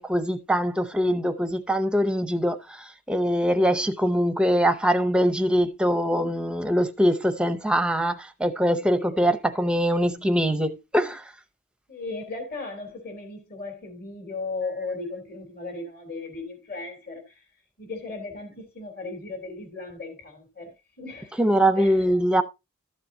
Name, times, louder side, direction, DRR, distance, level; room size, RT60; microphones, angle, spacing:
voice 1, 0.0-11.2 21.4-22.4, equal, 5° right, 0.7 m, -23 dB
voice 2, 11.9-17.4 17.8-21.4 21.8-22.1, left 3 dB, 45° left, 3.2 m, -36 dB
13.0 x 7.2 x 2.7 m
head